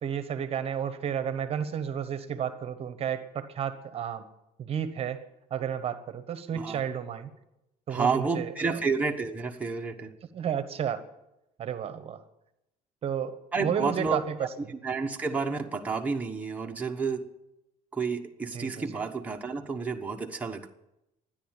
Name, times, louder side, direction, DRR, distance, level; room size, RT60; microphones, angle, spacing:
voice 1, 0.0-4.3 4.6-7.3 7.9-8.8 10.3-11.0 11.6-12.2 13.0-14.7 18.5-19.0, right 8 dB, 40° right, 11 dB, 1.0 m, -32 dB
voice 2, 7.9-10.1 13.5-14.2 14.7-17.3 17.9-20.7, right 4 dB, 10° right, 1 dB, 1.1 m, -30 dB
12.5 x 10.0 x 8.9 m, 0.90 s
cardioid pair, 135°, 15 cm